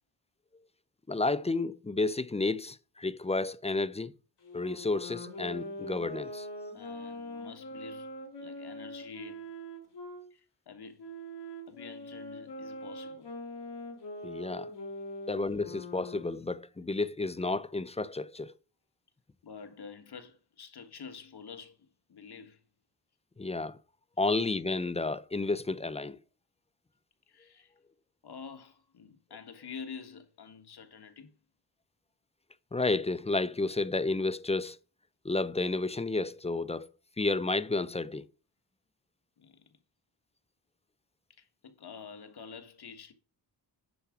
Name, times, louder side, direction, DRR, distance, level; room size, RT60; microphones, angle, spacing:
voice 1, 1.1-4.1 4.5-6.5 14.2-14.7 15.3-18.5 23.4-23.8 24.2-26.2 32.7-34.8 35.2-36.9 37.2-38.3, left 3 dB, 15° left, 0.4 m, -31 dB
Wind instrument woodwind instrument, 4.4-10.2 11.0-16.4, left 1 dB, 85° left, 3.5 m, -42 dB
voice 2, 6.7-8.1 8.4-9.5 10.3-11.1 11.7-13.3 19.4-22.6 27.3-27.7 28.2-31.3 39.4-39.7 41.3-43.1, left 6 dB, 65° left, 1.5 m, -48 dB
10.0 x 4.7 x 5.9 m
wide cardioid pair, 100°, 41 cm